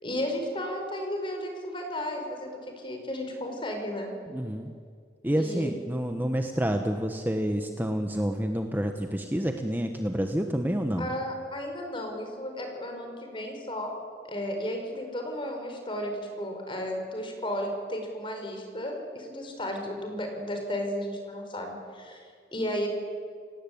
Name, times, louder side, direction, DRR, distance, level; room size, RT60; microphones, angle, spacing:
voice 1, 0.0-4.1 5.3-5.7 11.0-13.9 14.3-22.9, equal, 30° left, 3 dB, 5.3 m, -34 dB
voice 2, 4.3-4.7 5.2-11.1, equal, 10° right, 5 dB, 1.2 m, -28 dB
29.0 x 18.0 x 8.7 m, 2.1 s
head